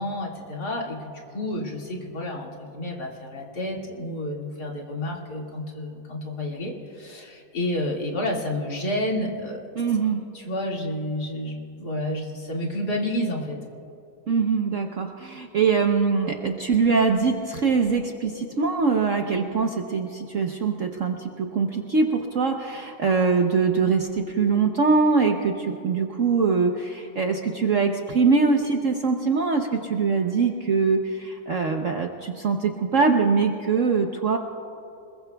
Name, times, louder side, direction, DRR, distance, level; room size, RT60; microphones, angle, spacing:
voice 1, 0.0-9.7 10.3-13.6, left 1 dB, 55° left, -2 dB, 2.7 m, -30 dB
voice 2, 9.8-10.2 14.3-34.4, right 4 dB, 55° right, 3 dB, 1.0 m, -23 dB
26.5 x 21.5 x 2.3 m, 2.7 s
omnidirectional pair, 2.1 m